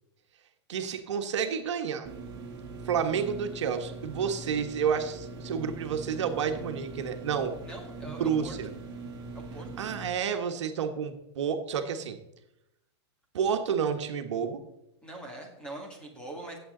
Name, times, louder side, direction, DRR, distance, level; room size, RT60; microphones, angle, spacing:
voice 1, 0.7-2.1 2.8-7.5 8.0-8.7 9.8-12.2 13.3-14.6, right 7 dB, 75° right, 5 dB, 1.4 m, -30 dB
sound 1, 2.0-10.0, right 3 dB, 30° right, 2.8 m, -42 dB
voice 2, 7.6-8.6 9.3-9.7 15.0-16.6, right 2 dB, 5° left, 1 dB, 2.2 m, -42 dB
16.5 x 7.8 x 3.9 m, 0.87 s
supercardioid pair, 155°, 15 cm